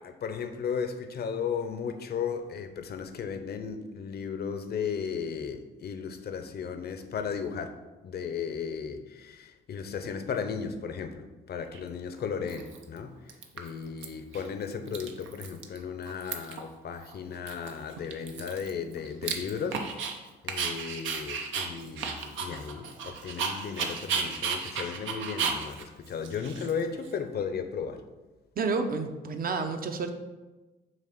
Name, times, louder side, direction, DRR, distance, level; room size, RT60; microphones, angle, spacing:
voice 1, 0.0-7.8 8.0-28.0, left 6 dB, 55° left, 0.8 m, -35 dB
Dog, 11.7-11.8 12.5-13.0 13.3-14.0 14.3-14.5 14.7-15.8 16.0-16.7 17.0-17.1 17.5-20.1 20.5-27.1, right 6 dB, 75° right, 0.9 m, -34 dB
voice 2, 28.6-30.1, right 4 dB, 45° right, 0.8 m, -30 dB
7.5 x 2.9 x 6.0 m
cardioid pair, 90°, 20 cm